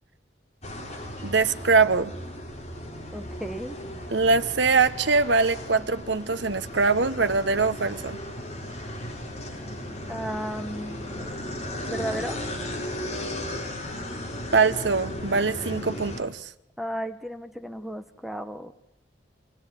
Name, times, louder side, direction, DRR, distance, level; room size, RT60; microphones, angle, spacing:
sound 1, 0.6-16.2, left 1 dB, 35° left, 6.3 m, -36 dB
voice 1, 1.2-2.1 4.1-8.2 14.5-16.5, right 4 dB, 75° right, 1.2 m, -23 dB
voice 2, 3.1-3.8 10.1-11.0 11.9-12.4 16.8-18.7, right 1 dB, ahead, 1.1 m, -34 dB
26.0 x 17.5 x 9.9 m
head